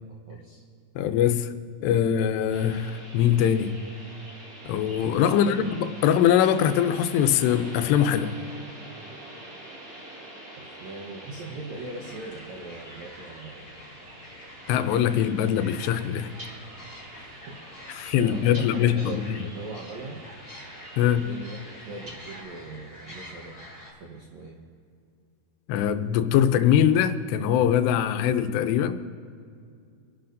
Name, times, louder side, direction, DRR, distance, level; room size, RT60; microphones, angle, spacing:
voice 1, 0.3-0.6 5.3-5.6 10.6-13.8 17.1-17.6 18.2-20.2 21.0-23.5 24.0-24.6, right 3 dB, 75° right, -2 dB, 1.6 m, -40 dB
voice 2, 1.0-1.5 1.8-3.7 4.7-5.6 6.0-8.3 14.7-16.3 17.9-19.4 21.0-21.3 25.7-29.0, left 9 dB, 85° left, 9 dB, 2.8 m, -22 dB
sound 1, 2.5-22.4, right 1 dB, 40° right, 1.2 m, -45 dB
sound 2, 11.7-23.9, left 1 dB, 20° left, 4.3 m, -47 dB
26.0 x 11.5 x 2.6 m, 2.3 s
omnidirectional pair, 4.8 m